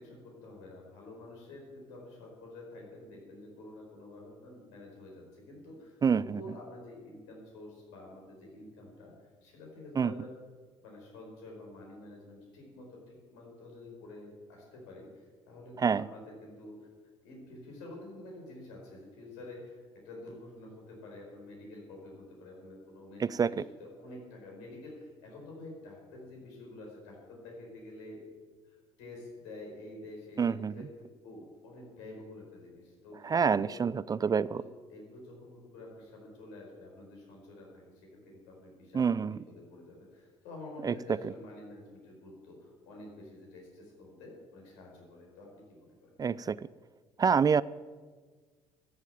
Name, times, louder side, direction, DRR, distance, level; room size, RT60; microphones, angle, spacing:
voice 1, 0.0-9.1 9.4-10.3 10.8-16.8 17.2-28.2 28.6-33.8 34.3-45.6 46.0-46.1, left 2 dB, 75° left, -1 dB, 4.8 m, -49 dB
voice 2, 6.0-6.4 10.0-10.1 15.8-16.1 23.2-23.5 30.4-30.7 33.2-34.6 38.9-39.4 40.8-40.9 46.2-46.6 47.2-47.6, right 6 dB, 25° right, 19 dB, 0.4 m, -27 dB
13.0 x 7.4 x 9.1 m, 1.5 s
hypercardioid pair, 55°, 14 cm